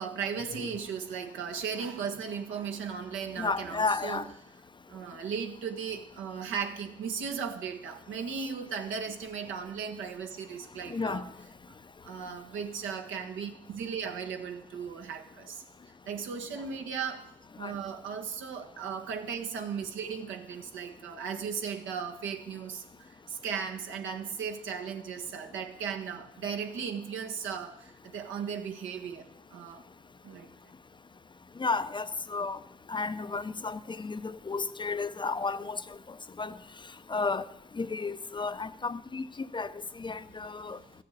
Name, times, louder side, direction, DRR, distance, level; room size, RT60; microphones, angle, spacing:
voice 1, 0.0-4.2 4.9-11.3 12.0-15.6 16.0-17.3 17.6-29.8 30.2-30.5 40.6-40.8, right 6 dB, 80° right, 1.6 m, -36 dB
voice 2, 3.4-4.2 10.9-11.2 17.6-17.7 31.6-32.6 32.9-35.8 36.4-36.5 37.1-37.4 37.8-39.3 39.5-39.7 40.0-40.8, left 4 dB, 25° left, 0.6 m, -32 dB
14.5 x 6.7 x 9.4 m
cardioid pair, 90°, 20 cm